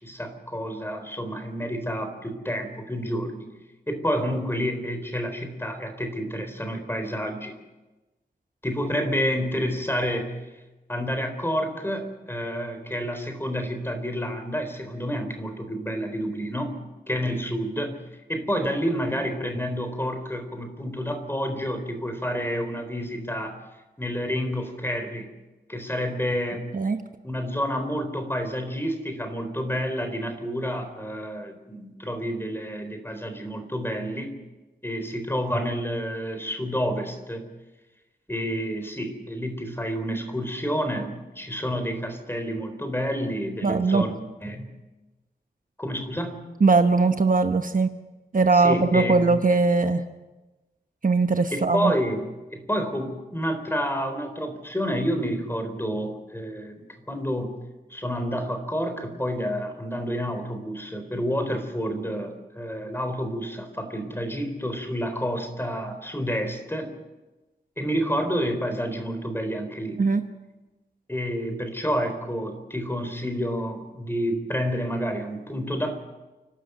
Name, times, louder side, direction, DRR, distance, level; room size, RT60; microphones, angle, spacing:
voice 1, 0.0-3.5 3.9-7.5 8.6-10.4 10.9-16.8 17.1-18.0 18.3-23.6 24.0-25.3 25.7-26.7 27.2-34.4 34.8-37.5 38.3-44.2 44.4-44.7 45.8-46.4 48.5-49.3 51.5-57.5 57.9-66.9 67.8-70.0 71.1-76.0, equal, 15° left, 7 dB, 4.0 m, -29 dB
voice 2, 43.6-44.0 46.6-48.0 48.3-50.0 51.0-51.9 70.0-70.2, right 3 dB, 50° right, 7 dB, 1.1 m, -20 dB
29.5 x 12.5 x 8.0 m, 1.1 s
wide cardioid pair, 85°, 17 cm